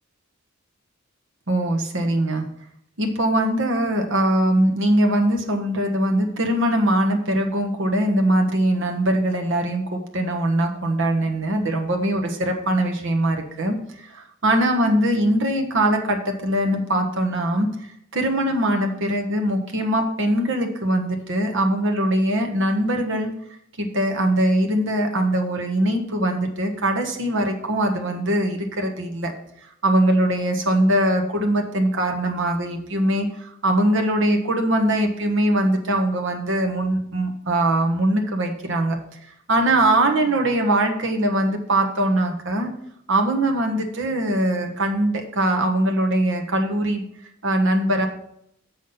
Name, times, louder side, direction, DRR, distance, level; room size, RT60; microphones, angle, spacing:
voice 1, 1.5-2.4 3.0-23.3 23.8-29.3 29.6-42.7 43.1-47.0 47.4-48.1, right 1 dB, 65° right, 4 dB, 1.3 m, -22 dB
7.3 x 5.9 x 5.6 m, 0.72 s
head